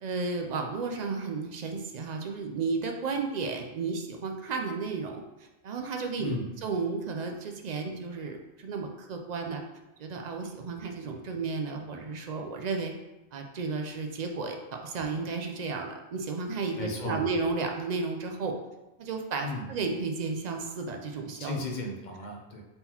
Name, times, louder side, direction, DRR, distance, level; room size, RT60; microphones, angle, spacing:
voice 1, 0.0-5.2 5.6-6.3 6.6-9.6 10.0-12.9 13.3-18.6 19.0-21.6, right 4 dB, 55° right, 3 dB, 0.5 m, -33 dB
voice 2, 6.2-6.5 16.8-17.3 19.4-19.7 21.3-22.6, left 2 dB, 50° left, 1 dB, 0.7 m, -35 dB
4.0 x 3.7 x 2.9 m, 1.0 s
omnidirectional pair, 1.2 m